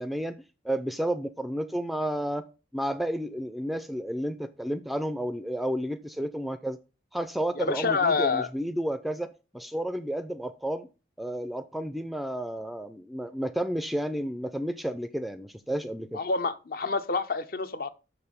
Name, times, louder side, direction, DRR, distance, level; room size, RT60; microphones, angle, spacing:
voice 1, 0.0-2.5 2.7-6.8 7.1-10.9 11.2-16.2, right 1 dB, ahead, 0.4 m, -31 dB
voice 2, 7.6-8.5 16.1-17.9, left 4 dB, 50° left, 0.7 m, -27 dB
6.8 x 6.2 x 5.2 m
head